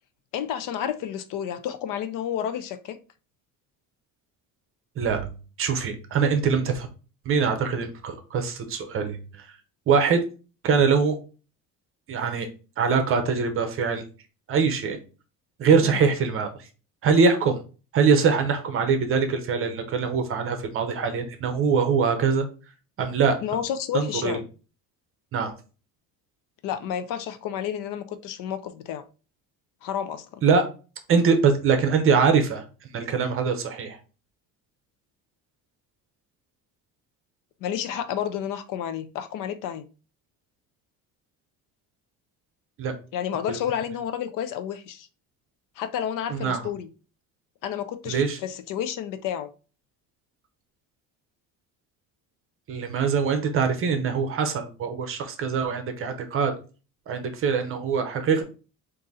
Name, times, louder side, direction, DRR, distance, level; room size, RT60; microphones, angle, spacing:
voice 1, 0.3-3.0 15.8-16.0 23.4-24.5 26.6-29.0 29.8-30.4 37.6-39.9 43.1-45.1 45.8-46.9 47.6-49.5, left 9 dB, 65° left, 0.5 m, -30 dB
voice 2, 5.0-6.9 7.2-9.5 9.9-10.2 10.6-11.2 12.1-12.5 12.8-14.1 14.5-15.0 15.6-16.7 17.0-17.6 17.9-22.5 23.0-23.4 23.9-24.4 25.3-25.5 30.4-30.6 31.1-34.0 42.8-42.9 43.5-43.6 46.3-46.6 48.1-48.4 52.7-56.5 57.1-58.4, right 5 dB, 35° right, 0.7 m, -23 dB
3.7 x 2.6 x 4.0 m
cardioid pair, 170°, 35 cm